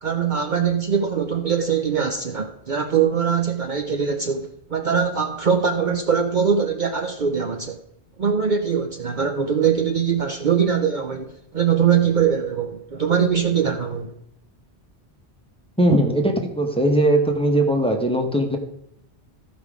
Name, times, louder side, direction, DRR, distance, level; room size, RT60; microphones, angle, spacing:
voice 1, 0.0-7.8 8.2-14.1, right 7 dB, 50° right, 5 dB, 0.8 m, -22 dB
voice 2, 15.8-18.6, right 1 dB, 5° left, 3 dB, 1.1 m, -19 dB
14.0 x 5.2 x 5.0 m, 0.80 s
omnidirectional pair, 1.1 m